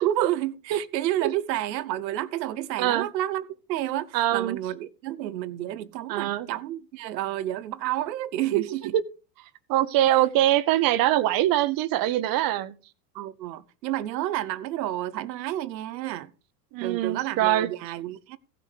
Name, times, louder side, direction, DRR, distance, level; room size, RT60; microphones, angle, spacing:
voice 1, 0.0-8.9 13.1-16.3 16.8-18.4, right 13 dB, 80° right, 1.0 m, -30 dB
voice 2, 4.1-4.6 6.1-6.5 8.5-8.6 8.9-9.0 9.7-12.7 16.7-17.7, right 13 dB, 45° right, 1.1 m, -23 dB
15.5 x 6.2 x 4.9 m
hypercardioid pair, 105°, 50 cm